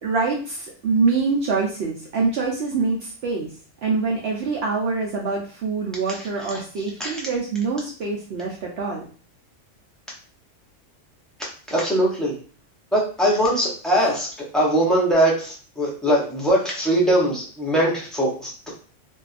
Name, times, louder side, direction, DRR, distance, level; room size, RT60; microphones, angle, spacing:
voice 1, 0.0-3.5 3.8-9.0, right 4 dB, 65° right, -2 dB, 0.7 m, -25 dB
voice 2, 11.7-12.3 12.9-14.3 14.5-18.7, right 1 dB, ahead, -5 dB, 0.5 m, -21 dB
2.6 x 2.2 x 2.4 m, 0.41 s
omnidirectional pair, 1.3 m